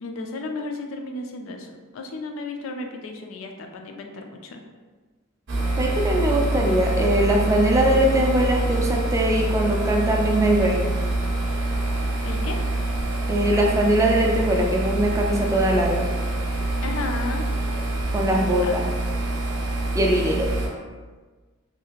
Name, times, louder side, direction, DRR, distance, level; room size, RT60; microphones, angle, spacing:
voice 1, 0.0-4.6 7.8-8.1 12.2-12.6 16.8-17.5 18.6-18.7, left 3 dB, 75° left, 3 dB, 0.4 m, -34 dB
sound 1, 5.5-20.7, right 2 dB, 65° right, 0.6 m, -25 dB
voice 2, 5.8-10.9 13.3-16.1 18.1-18.9 20.0-20.5, right 1 dB, 15° right, 0 dB, 0.3 m, -21 dB
2.7 x 2.4 x 2.9 m, 1.4 s
head